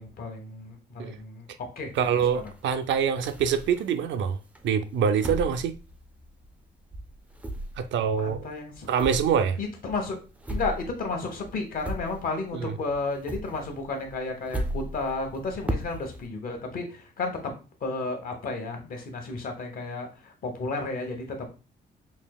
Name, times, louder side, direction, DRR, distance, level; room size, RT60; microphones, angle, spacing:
voice 1, 0.0-1.9 2.3-2.4 8.2-8.9 9.6-10.2 10.5-17.5 17.8-21.5, left 3 dB, 50° left, 1.1 m, -33 dB
sound 1, 1.9-4.1 4.5-6.7 6.9-12.6 12.9-16.3, right 1 dB, 5° right, 0.4 m, -37 dB
voice 2, 2.0-4.4 4.6-5.7 7.8-8.5 8.9-9.6 12.5-12.8, right 7 dB, 80° right, 0.5 m, -25 dB
5.4 x 2.8 x 2.2 m
cardioid pair, 160°, 19 cm